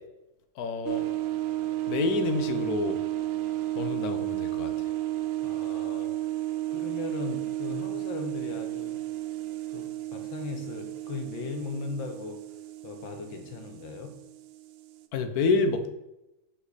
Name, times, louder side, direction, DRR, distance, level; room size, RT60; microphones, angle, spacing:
voice 1, 0.6-1.1 1.9-3.0 3.8-4.9 15.1-15.9, left 4 dB, 65° left, 7 dB, 1.0 m, -28 dB
sound 1, 0.9-15.1, right 15 dB, 80° right, 1.3 m, -33 dB
voice 2, 5.4-6.1 6.7-9.0 9.7-12.4 12.8-14.1, left 4 dB, 80° left, 4 dB, 1.8 m, -38 dB
5.9 x 5.8 x 4.1 m, 0.91 s
omnidirectional pair, 2.1 m